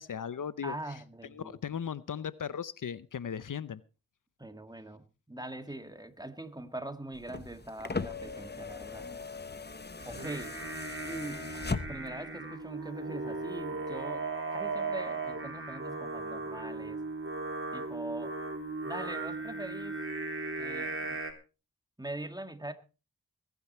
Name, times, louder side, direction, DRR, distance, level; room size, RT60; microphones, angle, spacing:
voice 1, 0.0-0.8 1.3-3.8, left 7 dB, 65° left, 0.7 m, -37 dB
voice 2, 0.6-1.6 4.4-9.1 10.1-10.6 11.0-11.5 11.9-14.3 14.5-17.0 17.7-18.4 18.8-20.0 20.6-21.2 22.0-22.7, right 1 dB, 10° right, 1.8 m, -42 dB
sound 1, 7.1-12.3 13.5-13.6, left 4 dB, 30° left, 1.0 m, -39 dB
Singing, 10.0-21.3, right 3 dB, 40° right, 3.5 m, -37 dB
21.0 x 9.5 x 4.3 m
wide cardioid pair, 60°, 33 cm